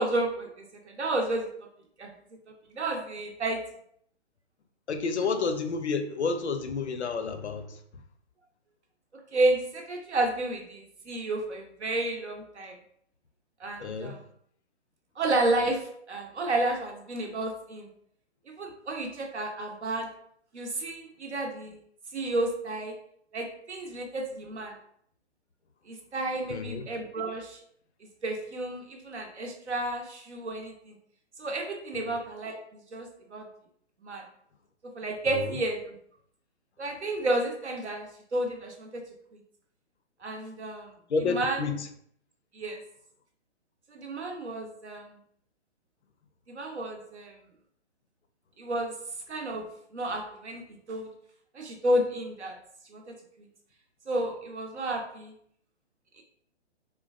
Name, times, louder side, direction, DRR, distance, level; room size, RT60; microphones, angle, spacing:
voice 1, 0.0-1.5 2.0-2.1 2.7-3.6 9.3-12.7 13.6-14.2 15.2-15.8 16.1-17.9 18.5-20.1 20.5-21.8 22.1-22.9 23.3-24.7 25.9-27.6 28.2-31.0 31.4-33.5 34.0-34.2 34.9-35.9 36.8-39.0 39.3-39.4 40.2-40.9 41.2-41.6 42.5-42.8 43.9-45.2 46.5-47.3 48.6-48.9 49.3-49.7 49.9-50.6 50.9-51.1 51.5-52.6 52.9-53.0 54.1-55.3 56.2-56.3, right 2 dB, 80° right, 3 dB, 0.8 m, -31 dB
voice 2, 4.9-7.8 13.8-14.2 26.5-26.9 31.9-32.2 35.3-35.6 41.1-41.9, left 4 dB, 80° left, 7 dB, 0.5 m, -30 dB
3.7 x 2.2 x 2.3 m, 0.66 s
figure-of-eight pair, 130°, 34 cm